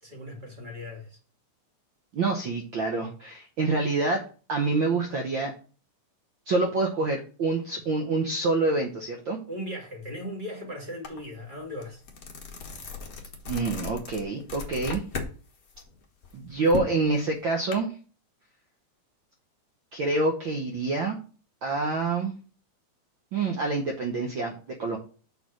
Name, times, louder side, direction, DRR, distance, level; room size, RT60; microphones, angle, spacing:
voice 1, 0.0-1.2 9.5-12.0, left 1 dB, 20° right, 1.7 m, -38 dB
voice 2, 2.1-4.2 4.5-5.5 6.5-9.4 13.5-15.0 16.3-17.9 19.9-21.2 21.6-22.3 23.3-25.0, right 3 dB, 80° right, 1.1 m, -27 dB
sound 1, 11.0-11.2 11.6-15.3 15.7-17.7, left 4 dB, 50° left, 1.0 m, -36 dB
6.5 x 4.4 x 6.2 m
omnidirectional pair, 3.5 m